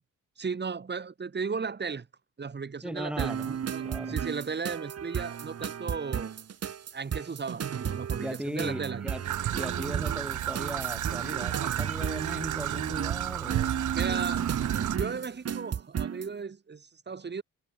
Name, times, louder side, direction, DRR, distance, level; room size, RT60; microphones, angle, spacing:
voice 1, 0.4-2.1 2.4-6.3 6.9-9.0 13.9-14.5 14.9-17.4, right 5 dB, 35° right, 6.7 m, -35 dB
voice 2, 2.8-3.6 3.8-4.2 8.2-9.2 9.5-13.8 14.1-14.2, equal, 5° right, 5.4 m, -38 dB
sound 1, 3.2-16.3, right 8 dB, 55° right, 4.7 m, -33 dB
Traffic noise roadway noise / Trickle dribble, 9.2-15.0, right 12 dB, 75° right, 6.9 m, -33 dB
cardioid pair, 90°, 30 cm